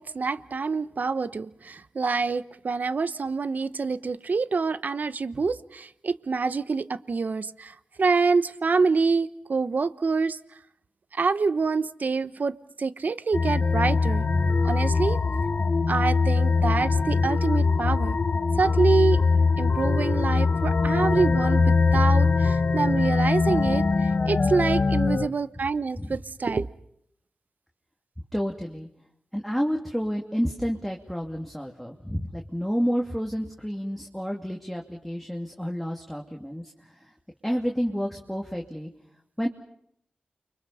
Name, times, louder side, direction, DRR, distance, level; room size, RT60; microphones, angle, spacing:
voice 1, 0.0-10.4 11.1-14.3 14.6-15.2 15.9-18.2 18.6-19.2 19.6-26.7, right 4 dB, 65° right, 14 dB, 1.0 m, -26 dB
sound 1, 13.3-25.3, left 4 dB, 55° left, 1.4 m, -22 dB
voice 2, 23.5-23.9 26.0-26.2 28.3-28.9 29.3-37.1 37.4-38.9 39.4-39.5, equal, ahead, 0 dB, 2.7 m, -30 dB
30.0 x 24.5 x 5.7 m, 0.72 s
cardioid pair, 50°, 3 cm